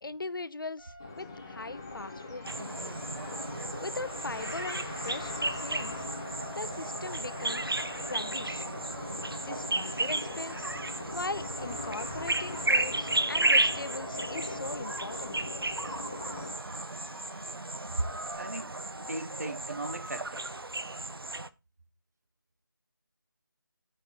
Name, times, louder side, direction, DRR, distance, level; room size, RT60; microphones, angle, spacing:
voice 1, 0.0-3.0 3.8-6.1 6.5-7.8 8.1-8.7 9.3-10.6 11.1-15.4, left 3 dB, 65° left, 0.5 m, -40 dB
sound 1, 0.8-18.4, left 1 dB, 40° left, 2.0 m, -52 dB
sound 2, 1.0-16.5, left 3 dB, 10° left, 0.5 m, -41 dB
sound 3, 2.4-21.5, right 2 dB, 75° right, 0.8 m, -33 dB
voice 2, 18.4-18.8 19.1-20.5, right 2 dB, 45° right, 1.1 m, -36 dB
7.1 x 5.2 x 5.6 m
figure-of-eight pair, 165°, 12 cm